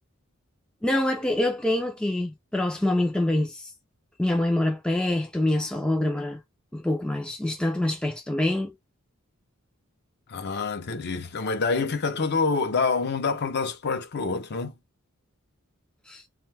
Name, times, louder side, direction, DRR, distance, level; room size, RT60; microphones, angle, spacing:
voice 1, 0.8-3.6 4.2-6.4 6.7-8.7 16.1-16.2, left 1 dB, 5° left, 0.4 m, -25 dB
voice 2, 10.3-14.7, left 4 dB, 50° left, 0.6 m, -27 dB
2.5 x 2.2 x 3.2 m
head